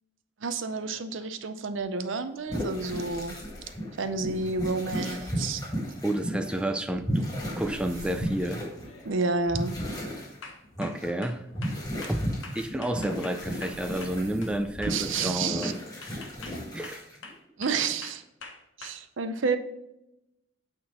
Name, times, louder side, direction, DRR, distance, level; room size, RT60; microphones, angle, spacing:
voice 1, 0.4-3.3 4.0-5.6 9.0-9.7 14.9-15.7 17.6-18.2 18.8-19.6, right 4 dB, 75° right, 0.6 m, -30 dB
sound 1, 0.7-1.4 5.6-5.7 7.3-7.6 8.0-8.3 8.8-9.2 9.6-9.8 10.4-14.6 14.8-18.9, left 4 dB, 75° left, 1.2 m, -46 dB
sound 2, 1.8-1.9 2.4-2.5 3.1-5.6 7.6-9.9 12.1-12.2 13.2-15.5, right 1 dB, 55° right, 1.1 m, -46 dB
sound 3, 2.5-6.7 7.0-9.1 9.4-10.4 10.6-11.1 11.5-14.3 14.7-17.3, equal, 20° left, 1.8 m, -34 dB
voice 2, 6.0-7.3 7.6-8.6 10.8-11.5 12.1-16.2 16.7-17.1, right 1 dB, 5° right, 0.4 m, -31 dB
8.8 x 3.8 x 4.2 m
head